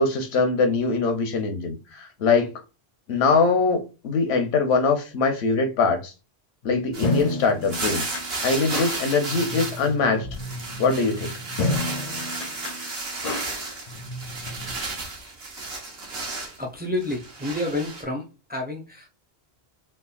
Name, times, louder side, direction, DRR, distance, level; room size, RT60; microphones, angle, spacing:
voice 1, 0.0-2.5 3.1-6.1 6.6-8.1 8.4-10.3 10.8-11.3, left 4 dB, 85° left, 1.0 m, -22 dB
sound 1, 6.6-14.7, left 2 dB, 55° left, 0.5 m, -32 dB
sound 2, 6.9-9.9 10.2-16.6 17.0-18.0, right 3 dB, 70° right, 1.2 m, -33 dB
voice 2, 16.6-19.1, left 1 dB, 15° right, 0.3 m, -29 dB
3.5 x 2.2 x 2.3 m
omnidirectional pair, 1.1 m